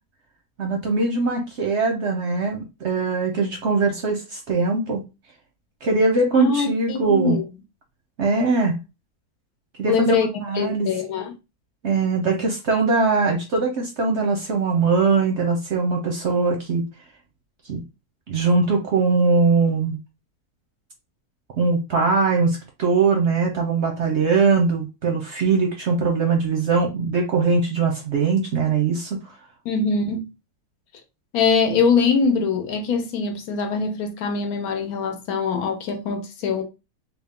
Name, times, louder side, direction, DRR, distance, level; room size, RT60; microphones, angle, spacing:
voice 1, 0.6-5.0 5.8-7.4 8.2-8.8 9.8-10.1 10.4-10.9 11.8-16.8 17.7-17.8 18.3-20.0 21.6-29.2, right 4 dB, 60° right, 0.8 m, -21 dB
voice 2, 6.3-7.4 9.9-10.3 10.5-11.3 29.6-30.3 31.3-36.6, left 5 dB, 70° left, 1.2 m, -23 dB
3.5 x 2.3 x 3.6 m
omnidirectional pair, 1.7 m